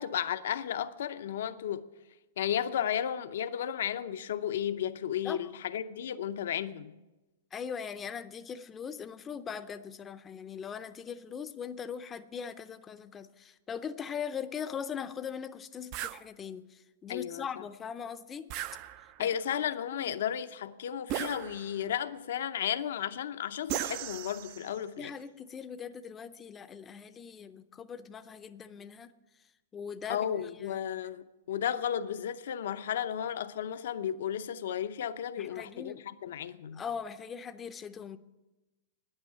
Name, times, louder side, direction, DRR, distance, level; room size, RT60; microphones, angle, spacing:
voice 1, 0.0-1.8 2.4-6.9 17.1-17.6 19.2-25.1 30.1-36.8, left 9 dB, 70° left, 0.7 m, -34 dB
voice 2, 7.5-18.5 19.2-19.5 20.0-20.2 25.0-29.1 29.7-30.3 30.6-30.8 35.4-36.0 36.7-38.2, left 7 dB, 15° left, 0.5 m, -40 dB
sound 1, 15.9-16.2 18.5-19.3 21.1-21.9 23.7-24.8, right 13 dB, 35° right, 0.4 m, -37 dB
10.5 x 9.0 x 9.2 m
hypercardioid pair, 160°, 0 cm